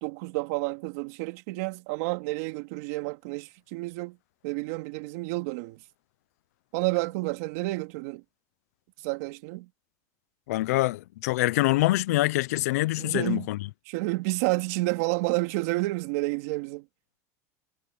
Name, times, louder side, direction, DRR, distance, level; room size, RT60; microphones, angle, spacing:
voice 1, 0.0-4.2 4.4-5.8 6.7-8.2 9.0-9.7 13.0-13.5 13.9-16.8, right 22 dB, 75° right, 2.7 m, -30 dB
voice 2, 10.5-13.6, left 18 dB, 85° left, 0.6 m, -25 dB
supercardioid pair, 130°, 8 cm